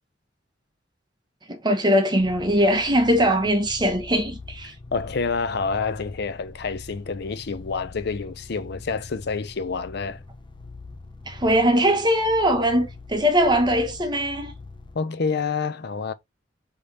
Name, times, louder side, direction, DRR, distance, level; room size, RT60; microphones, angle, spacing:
voice 1, 1.5-4.7 11.3-14.5, equal, 25° right, 1.0 m, -21 dB
sound 1, 2.2-14.9, left 3 dB, 25° left, 0.7 m, -43 dB
voice 2, 4.9-10.2 14.9-16.1, left 4 dB, 60° left, 0.6 m, -28 dB
3.6 x 3.4 x 4.1 m
head